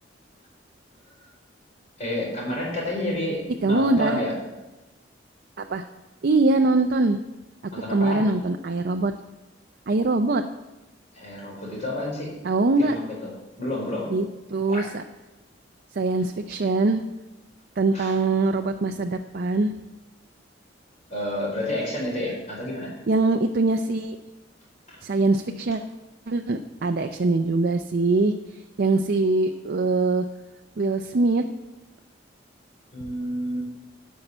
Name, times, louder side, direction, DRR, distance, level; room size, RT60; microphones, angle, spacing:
voice 1, 2.0-4.3 7.7-8.3 11.1-12.3 12.8-13.0 13.6-14.1 14.7-14.8 17.9-18.1 21.1-22.9 24.9-25.0 32.9-33.6, left 1 dB, 40° left, -3 dB, 4.7 m, -29 dB
voice 2, 3.6-4.2 5.6-5.8 6.2-7.2 7.6-9.1 9.9-10.4 12.4-13.0 14.1-15.0 15.9-17.0 17.8-19.7 23.1-24.2 25.0-25.8 26.3-30.3 30.8-31.5, right 3 dB, 55° right, 5 dB, 0.5 m, -23 dB
11.5 x 5.6 x 7.9 m, 1.1 s
head